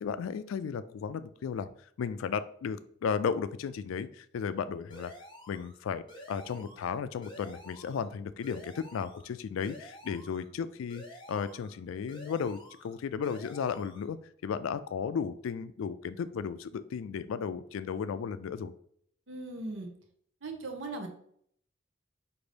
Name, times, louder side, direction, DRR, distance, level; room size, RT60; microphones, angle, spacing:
voice 1, 0.0-1.7 2.0-5.1 5.5-14.2 14.4-18.7, left 6 dB, 85° left, 13 dB, 0.3 m, -34 dB
sound 1, 4.9-5.8 6.1-6.9 7.2-8.1 8.4-9.3 9.6-10.5 10.9-11.8 12.1-12.9 13.2-14.1, equal, 25° left, 0.7 m, -50 dB
voice 2, 19.3-19.9 20.4-21.1, right 2 dB, 75° right, 4 dB, 0.7 m, -38 dB
5.1 x 2.6 x 3.3 m, 0.64 s
head